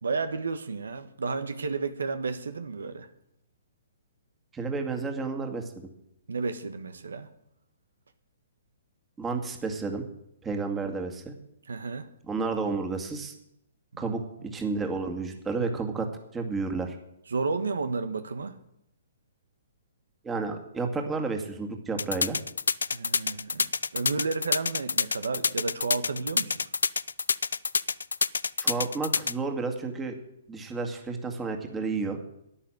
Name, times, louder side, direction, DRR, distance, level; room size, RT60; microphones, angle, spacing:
voice 1, 0.0-3.1 6.3-7.3 11.7-12.1 13.9-14.1 17.3-18.6 22.9-26.6, right 4 dB, 85° right, 10 dB, 1.3 m, -32 dB
voice 2, 4.5-5.9 9.2-10.0 10.4-11.3 12.3-13.3 14.0-14.2 14.5-16.1 16.3-17.0 20.2-22.4 28.6-30.2 30.5-32.2, right 4 dB, 15° right, 4 dB, 2.2 m, -31 dB
sound 1, 22.0-29.3, left 5 dB, 85° left, 0.4 m, -27 dB
11.5 x 10.0 x 9.1 m, 0.79 s
hypercardioid pair, 135°, 0 cm